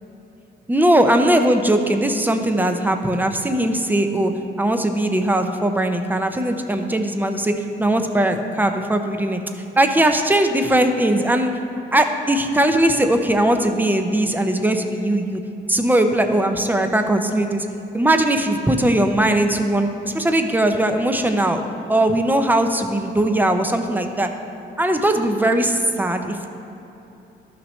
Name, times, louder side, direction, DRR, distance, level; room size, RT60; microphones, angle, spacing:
voice 1, 0.7-4.3 4.6-7.5 7.8-9.4 9.8-11.5 11.9-15.4 15.7-17.7 17.9-21.6 21.9-24.3 24.8-26.5, right 1 dB, 10° right, 6 dB, 0.6 m, -19 dB
12.5 x 5.9 x 3.2 m, 3.0 s
cardioid pair, 90°, 20 cm